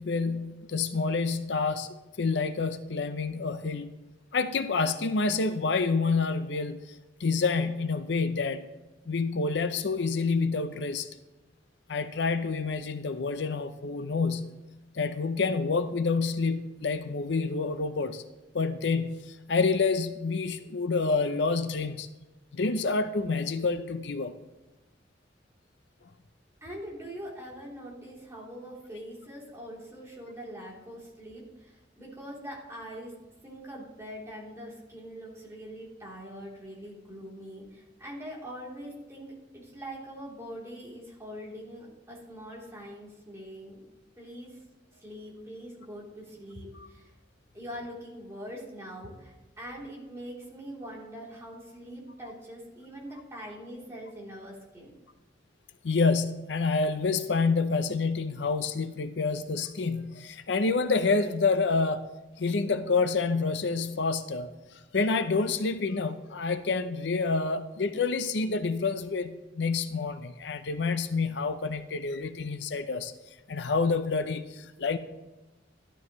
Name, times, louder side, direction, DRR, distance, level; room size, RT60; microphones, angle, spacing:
voice 1, 0.0-1.9 2.2-3.9 4.3-8.7 9.1-11.1 11.9-14.5 14.9-18.2 18.5-22.1 22.5-24.3 46.8-46.9 55.8-62.1 62.4-73.1 73.5-75.0, left 4 dB, 65° left, 10 dB, 0.6 m, -28 dB
voice 2, 26.6-33.1 33.4-43.8 44.2-44.6 45.0-47.1 47.5-54.9, equal, 15° right, -5 dB, 3.3 m, -43 dB
13.5 x 12.5 x 3.1 m, 1.1 s
head